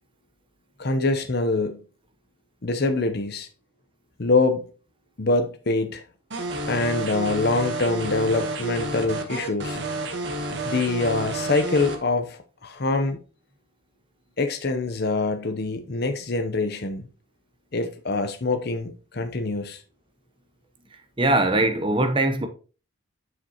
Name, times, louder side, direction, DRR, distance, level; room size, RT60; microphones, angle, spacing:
voice 1, 0.8-1.8 2.6-3.5 4.2-4.7 5.2-6.0 6.7-9.8 10.6-13.2 14.4-17.1 17.7-19.8, left 3 dB, 50° left, 0.7 m, -25 dB
sound 1, 6.3-12.0, right 2 dB, 55° right, 1.1 m, -30 dB
voice 2, 21.2-22.5, right 2 dB, 25° right, 0.8 m, -21 dB
7.3 x 6.4 x 2.9 m
head